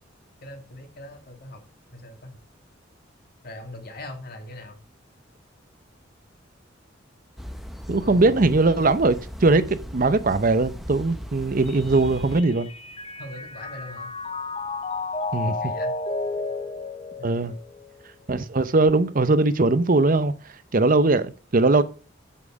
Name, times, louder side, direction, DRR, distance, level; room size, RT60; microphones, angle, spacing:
voice 1, 0.4-1.7 1.9-2.4 3.4-4.8 8.0-8.6 11.8-12.2 13.2-14.1 15.6-16.0 17.2-17.5, left 1 dB, 50° left, 2.4 m, -41 dB
sound 1, 7.4-12.4, equal, ahead, 0.8 m, -37 dB
voice 2, 7.9-12.7 15.3-15.6 17.2-17.6 18.3-20.3 20.7-21.8, right 3 dB, 45° right, 0.7 m, -20 dB
Mallet percussion, 11.7-18.1, left 3 dB, 30° left, 0.8 m, -32 dB
8.5 x 7.5 x 5.1 m
head